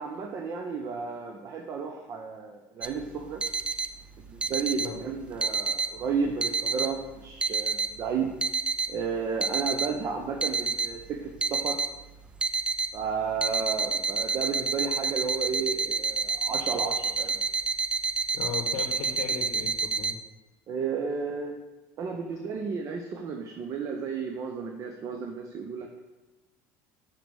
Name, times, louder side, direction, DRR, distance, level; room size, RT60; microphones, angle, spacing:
voice 1, 0.0-3.4 4.2-8.3 8.9-11.8 12.9-17.4 20.7-21.5 22.0-26.0, right 5 dB, 45° right, 3 dB, 0.7 m, -33 dB
sound 1, 2.8-20.1, right 4 dB, 15° right, 0.4 m, -29 dB
voice 2, 18.3-20.2, left 7 dB, 85° left, 1 dB, 0.9 m, -36 dB
6.5 x 4.1 x 6.2 m, 1.1 s
supercardioid pair, 115°, 8 cm